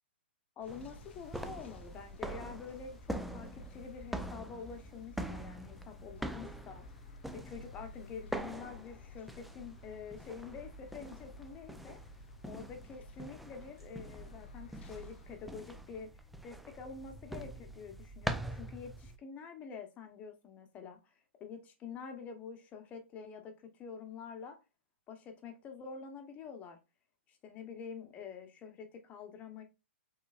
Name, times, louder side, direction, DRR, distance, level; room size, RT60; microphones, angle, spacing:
sound 1, 0.6-15.6, left 6 dB, 65° left, 0.5 m, -56 dB
voice 1, 0.6-7.0 7.3-12.0 12.4-16.1 16.4-21.1 21.4-24.6 25.1-26.8 27.3-29.6, left 6 dB, 20° left, 0.9 m, -47 dB
sound 2, 0.7-19.2, right 1 dB, ahead, 0.3 m, -44 dB
5.3 x 3.9 x 2.4 m
hypercardioid pair, 145°, 7 cm